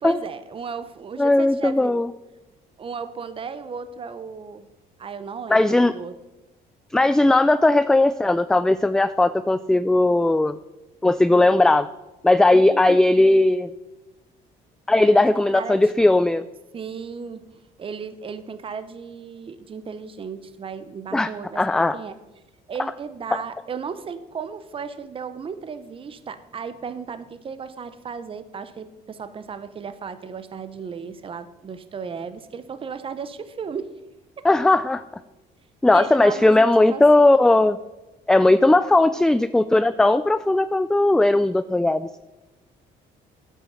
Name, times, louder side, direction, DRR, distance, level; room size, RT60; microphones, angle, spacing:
voice 1, 0.0-2.0 2.8-4.7 5.0-6.1 12.6-13.0 15.2-15.9 16.7-17.4 17.8-22.1 22.7-33.9 34.4-34.5 35.9-37.4, right 6 dB, 30° right, 12 dB, 0.9 m, -35 dB
voice 2, 1.2-2.1 5.5-5.9 6.9-10.6 11.0-11.9 12.2-13.7 14.9-16.4 21.1-21.3 21.6-22.0 22.8-22.9 34.4-35.0 35.8-37.8 38.3-42.2, left 2 dB, 5° left, 13 dB, 0.3 m, -17 dB
9.6 x 8.3 x 5.7 m, 1.1 s
cardioid pair, 110°, 17 cm